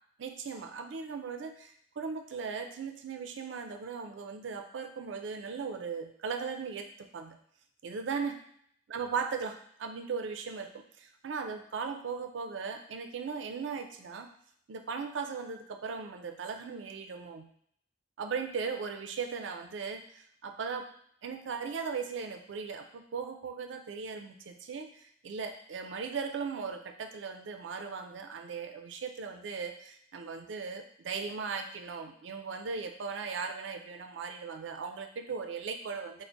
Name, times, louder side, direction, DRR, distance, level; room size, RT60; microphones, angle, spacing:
voice 1, 0.2-7.4 7.8-8.4 8.9-14.3 14.7-17.5 18.2-20.9 21.2-36.2, right 5 dB, 85° right, 6 dB, 0.4 m, -38 dB
3.4 x 2.0 x 3.8 m, 0.67 s
head